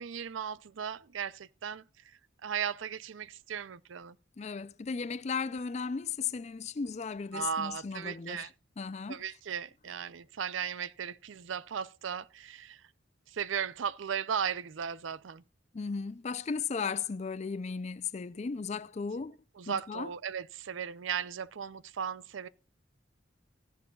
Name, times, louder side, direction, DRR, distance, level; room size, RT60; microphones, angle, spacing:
voice 1, 0.0-4.2 7.3-8.5 9.1-12.9 13.3-15.4 19.6-22.5, right 7 dB, 85° right, 0.5 m, -36 dB
voice 2, 4.4-8.5 8.8-9.2 15.7-19.4 19.7-20.1, left 5 dB, 35° left, 0.4 m, -36 dB
15.5 x 11.0 x 2.3 m
head